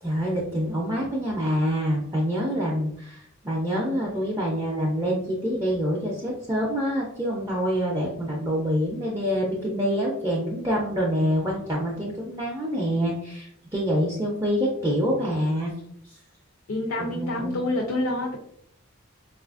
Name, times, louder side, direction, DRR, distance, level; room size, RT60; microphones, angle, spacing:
voice 1, 0.0-15.7 17.0-17.6, equal, 15° right, -4 dB, 0.4 m, -26 dB
voice 2, 16.7-18.4, left 1 dB, 65° left, 0 dB, 0.5 m, -27 dB
3.9 x 2.4 x 2.4 m, 0.72 s
head